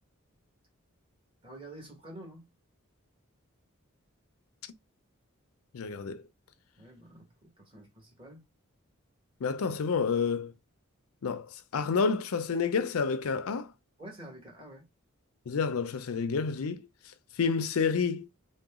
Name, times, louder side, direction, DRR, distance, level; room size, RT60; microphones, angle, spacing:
voice 1, 1.4-2.5 6.8-8.4 14.0-14.8, right 1 dB, 25° right, 1.5 m, -48 dB
voice 2, 5.7-6.2 9.4-10.5 11.2-11.5 11.7-13.7 15.5-16.8 17.4-18.3, left 5 dB, 90° left, 0.5 m, -29 dB
3.8 x 2.2 x 3.6 m
head